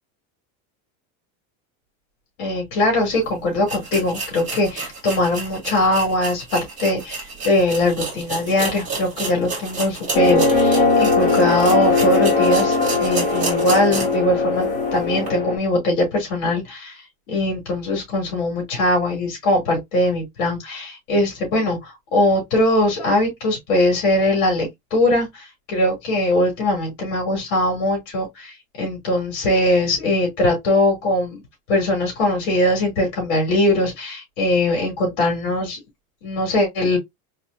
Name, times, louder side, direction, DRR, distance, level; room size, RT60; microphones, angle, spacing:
voice 1, 2.4-17.0 17.3-31.4 31.7-35.8 36.2-37.0, left 1 dB, 55° left, 2.7 m, -21 dB
sound 1, 3.1-3.2 3.6-14.3 14.6-14.7 15.2-15.3, right 4 dB, 20° right, 1.7 m, -31 dB
sound 2, 10.1-15.6, left 3 dB, 20° left, 1.7 m, -19 dB
4.2 x 3.4 x 2.6 m
supercardioid pair, 175°, 40 cm